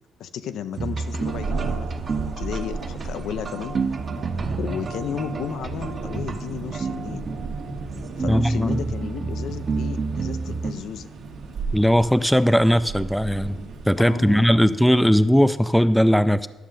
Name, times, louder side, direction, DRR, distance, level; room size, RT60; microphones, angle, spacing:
voice 1, 0.2-1.9 2.4-3.8 4.6-7.2 8.2-11.1 14.0-14.8, left 9 dB, 80° left, 11 dB, 0.4 m, -33 dB
sound 1, 0.7-10.7, right 4 dB, 40° right, 0.7 m, -30 dB
Thunder, 1.0-14.6, right 4 dB, 80° right, 1.3 m, -35 dB
voice 2, 8.3-8.8 11.7-13.6 13.9-16.5, equal, ahead, 14 dB, 0.3 m, -18 dB
11.5 x 6.3 x 3.7 m, 1.3 s
cardioid pair, 90°, 0 cm